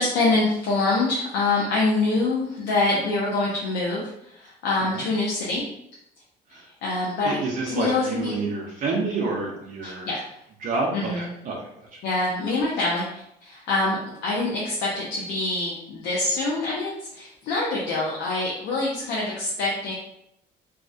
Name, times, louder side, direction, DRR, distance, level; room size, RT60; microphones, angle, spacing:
voice 1, 0.0-5.6 6.5-7.4 7.7-8.4 9.8-10.2 10.9-11.3 12.0-19.9, left 2 dB, 90° left, -4 dB, 0.5 m, -25 dB
voice 2, 7.2-10.1 10.6-11.6, right 3 dB, 55° right, -3 dB, 0.5 m, -28 dB
2.3 x 2.1 x 2.6 m, 0.78 s
cardioid pair, 110°, 17 cm